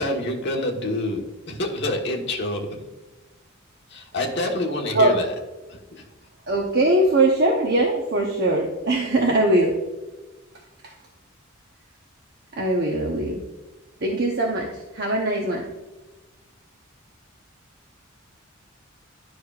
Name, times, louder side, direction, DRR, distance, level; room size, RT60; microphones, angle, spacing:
voice 1, 0.0-2.9 3.9-5.3 5.7-6.0, left 1 dB, 55° left, 1 dB, 1.2 m, -27 dB
voice 2, 6.5-9.7 10.8-10.9 12.5-13.4 14.0-15.6, right 1 dB, 50° right, 0 dB, 0.9 m, -21 dB
12.0 x 4.8 x 2.4 m, 1.1 s
head